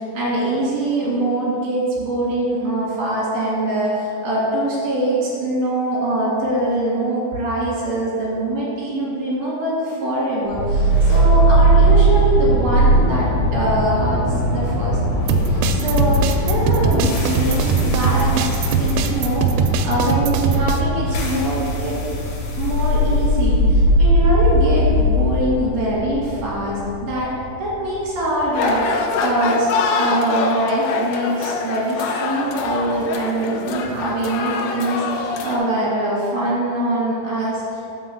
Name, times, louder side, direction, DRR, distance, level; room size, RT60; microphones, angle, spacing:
voice 1, 0.0-14.2 14.5-15.0 15.3-22.0 22.5-27.3 27.6-37.9, right 1 dB, 50° right, -7 dB, 2.4 m, -23 dB
sound 1, 10.5-28.6, right 1 dB, 65° left, 2.8 m, -19 dB
sound 2, 15.3-20.8, right 5 dB, 85° right, 3.0 m, -20 dB
sound 3, 28.5-35.6, left 4 dB, 85° left, 2.5 m, -24 dB
5.8 x 5.4 x 6.7 m, 2.8 s
omnidirectional pair, 5.6 m